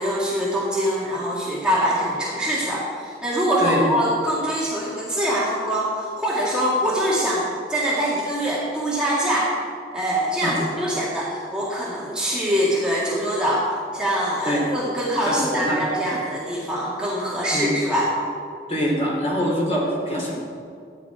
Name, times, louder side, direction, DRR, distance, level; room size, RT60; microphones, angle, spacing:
voice 1, 0.0-9.5 9.9-13.7 13.9-18.1, equal, 5° right, -7 dB, 1.7 m, -24 dB
voice 2, 15.2-15.8 16.0-16.1 17.5-17.7 18.7-20.3, equal, 35° left, -4 dB, 3.0 m, -24 dB
13.5 x 9.2 x 4.7 m, 2.3 s
head